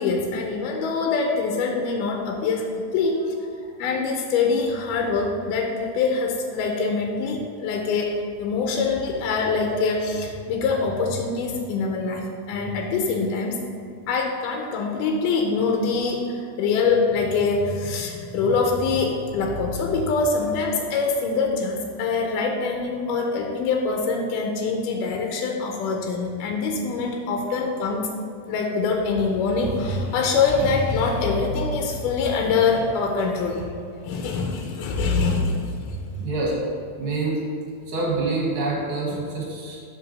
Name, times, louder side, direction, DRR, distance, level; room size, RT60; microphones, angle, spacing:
voice 1, 0.0-2.7 2.9-3.2 3.8-8.1 8.4-13.6 14.1-28.1 28.5-33.7 34.1-36.2, left 4 dB, 80° left, 2 dB, 1.9 m, -24 dB
voice 2, 36.2-36.5 37.0-37.4 37.9-39.8, right 3 dB, 60° right, -4 dB, 2.5 m, -27 dB
7.6 x 3.4 x 6.4 m, 2.4 s
omnidirectional pair, 4.4 m